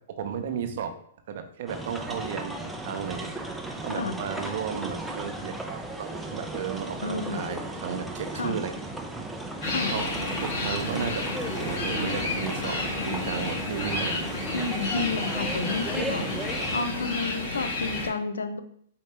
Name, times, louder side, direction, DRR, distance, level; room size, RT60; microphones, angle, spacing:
voice 1, 0.2-0.9 1.3-3.3 3.8-8.7 9.8-10.1 10.4-11.2 11.6-14.8, right 7 dB, 60° right, 7 dB, 0.7 m, -34 dB
sound 1, 1.7-16.8, right 2 dB, 5° right, 0.4 m, -35 dB
voice 2, 7.0-7.6 8.3-8.6 9.7-9.9 14.5-16.2 16.7-18.6, left 4 dB, 85° left, 9 dB, 0.5 m, -31 dB
sound 2, 9.6-18.1, left 2 dB, 50° left, 1.7 m, -31 dB
4.4 x 2.8 x 3.3 m, 0.66 s
hypercardioid pair, 130°, 0 cm